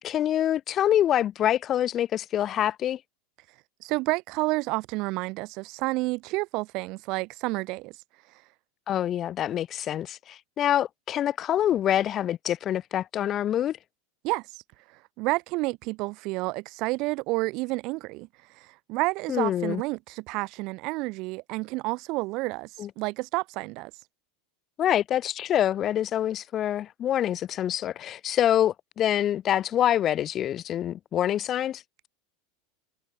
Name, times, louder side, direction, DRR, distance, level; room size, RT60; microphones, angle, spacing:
voice 1, 0.0-3.0 8.9-13.8 19.3-19.8 22.8-22.9 24.8-31.8, left 11 dB, 35° left, 1.6 m, -26 dB
voice 2, 3.8-7.9 14.2-14.4 15.2-18.3 18.9-22.7 23.0-23.9, right 23 dB, 55° right, 1.2 m, -29 dB
supercardioid pair, 130°, 0 cm